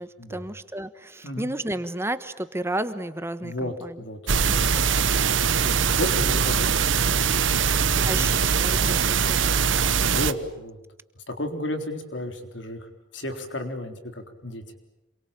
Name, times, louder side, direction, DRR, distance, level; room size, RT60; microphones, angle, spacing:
voice 1, 0.0-4.0 4.3-4.8 8.0-8.3 8.6-9.9, right 1 dB, 15° right, 12 dB, 1.3 m, -33 dB
voice 2, 3.4-4.5 5.5-8.3 10.0-10.8 11.3-12.9 13.1-14.6, left 1 dB, 65° left, 6 dB, 3.8 m, -34 dB
sound 1, 4.3-10.3, right 6 dB, 70° right, 1.0 m, -22 dB
27.5 x 23.0 x 8.8 m, 0.95 s
head